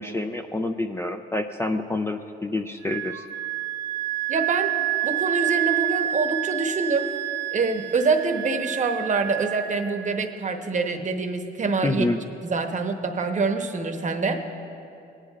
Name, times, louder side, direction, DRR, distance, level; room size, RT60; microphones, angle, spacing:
voice 1, 0.0-3.2 11.8-12.2, left 2 dB, 10° left, 6 dB, 0.4 m, -27 dB
Wind instrument woodwind instrument, 2.8-10.3, right 14 dB, 65° right, 0.7 m, -29 dB
voice 2, 4.3-4.7 5.0-7.1 7.5-12.1 12.4-14.4, right 4 dB, 40° right, 5 dB, 0.9 m, -25 dB
19.0 x 9.9 x 2.4 m, 2.8 s
cardioid pair, 90°, 20 cm